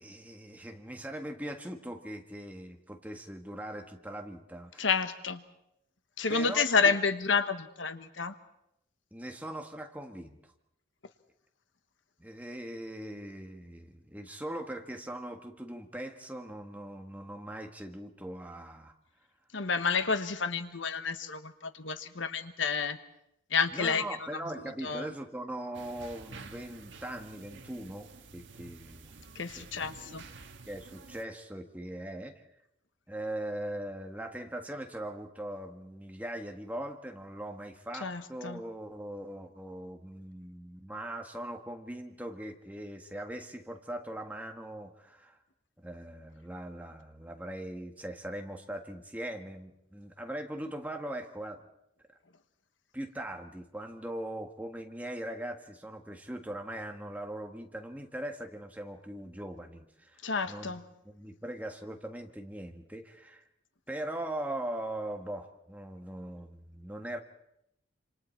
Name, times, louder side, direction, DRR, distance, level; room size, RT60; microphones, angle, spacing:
voice 1, 0.0-4.9 6.3-6.7 9.1-10.4 12.2-18.9 23.7-29.3 29.6-29.7 30.7-32.4 33.1-45.4 45.8-51.6 52.9-60.7 61.0-63.4 63.9-67.2, right 1 dB, 10° right, 4 dB, 1.6 m, -40 dB
voice 2, 4.8-5.4 6.2-8.3 19.5-23.0 23.5-24.0 24.8-25.1 29.3-30.2 38.0-38.6 60.2-60.8, left 5 dB, 90° left, 10 dB, 1.3 m, -30 dB
sound 1, 25.7-31.2, right 3 dB, 80° right, 1.6 m, -50 dB
27.0 x 27.0 x 4.5 m, 0.81 s
head